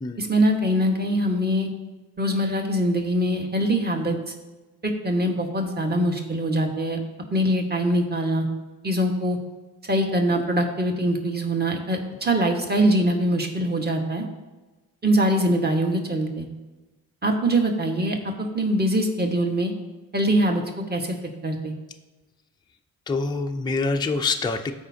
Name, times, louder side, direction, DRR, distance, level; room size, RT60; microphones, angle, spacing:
voice 1, 0.2-1.7 2.2-4.2 4.8-7.0 7.3-8.5 8.8-9.4 9.8-14.2 15.0-16.5 17.2-19.7 20.1-20.6 20.9-21.2 21.4-21.7, right 1 dB, 20° right, 2 dB, 1.6 m, -23 dB
voice 2, 23.1-24.7, left 3 dB, 10° left, 5 dB, 0.6 m, -25 dB
13.5 x 4.8 x 2.8 m, 1.2 s
hypercardioid pair, 50°, 42 cm